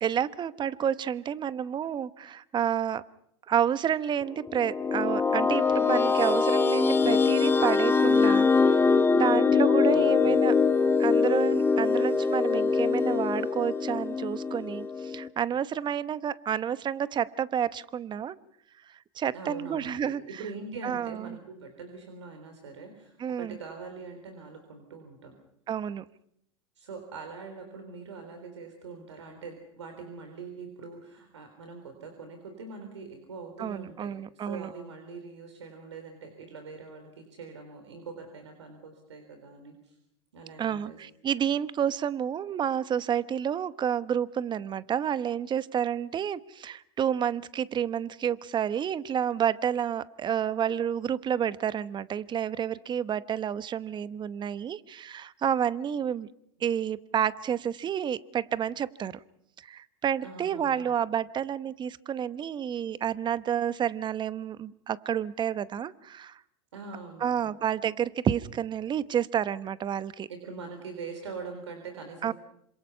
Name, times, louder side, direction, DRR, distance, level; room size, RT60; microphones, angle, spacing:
voice 1, 0.0-3.0 3.5-10.5 11.0-18.4 19.2-20.2 20.8-21.4 23.2-23.6 25.7-26.0 33.6-34.7 40.6-56.3 56.6-59.1 59.6-66.4 67.2-70.3 72.2-72.3, right 9 dB, 30° right, 16 dB, 1.0 m, -30 dB
sound 1, 4.4-15.3, left 5 dB, 15° left, 1.6 m, -23 dB
voice 2, 9.9-10.4 19.3-25.3 26.8-40.0 40.3-41.0 60.2-60.9 66.7-67.5 70.3-72.3, right 4 dB, 90° right, 5 dB, 4.0 m, -43 dB
27.0 x 26.0 x 5.6 m, 0.75 s
hypercardioid pair, 95°, 15 cm